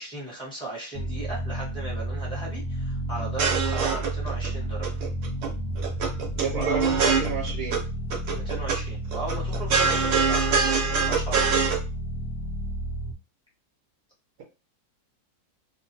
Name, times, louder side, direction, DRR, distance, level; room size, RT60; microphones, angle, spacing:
voice 1, 0.0-5.0 6.5-7.1 8.3-11.6, right 2 dB, 5° left, -6 dB, 0.8 m, -36 dB
sound 1, 0.9-13.1, right 1 dB, 85° left, 0.7 m, -31 dB
sound 2, 3.2-4.5 4.8-5.5 5.8-7.8 8.1-8.8 9.1-11.8, right 6 dB, 85° right, 1.5 m, -24 dB
voice 2, 6.3-7.8, right 5 dB, 65° right, 0 dB, 1.0 m, -30 dB
2.9 x 2.5 x 2.7 m, 0.32 s
omnidirectional pair, 2.0 m